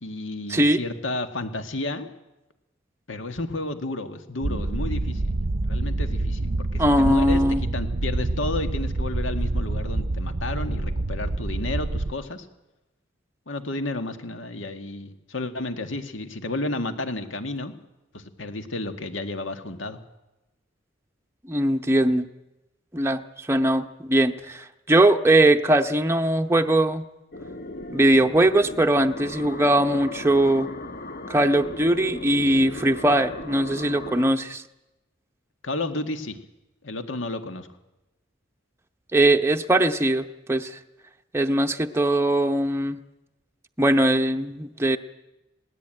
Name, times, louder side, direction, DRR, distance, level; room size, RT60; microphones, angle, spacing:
voice 1, 0.0-2.1 3.1-5.4 5.7-7.4 7.7-12.5 13.5-17.7 18.1-20.0 35.6-36.4 36.8-37.7, left 2 dB, 70° left, 7 dB, 1.9 m, -32 dB
sound 1, 4.4-12.1, right 2 dB, 50° right, 0.7 m, -27 dB
voice 2, 6.8-7.6 21.5-22.3 22.9-27.0 27.9-30.7 31.3-34.6 39.1-40.8 41.3-43.0 43.8-45.0, right 1 dB, 15° right, 5 dB, 0.7 m, -21 dB
sound 2, 27.3-34.3, left 1 dB, 50° left, 1.3 m, -37 dB
20.5 x 17.5 x 9.0 m, 0.98 s
head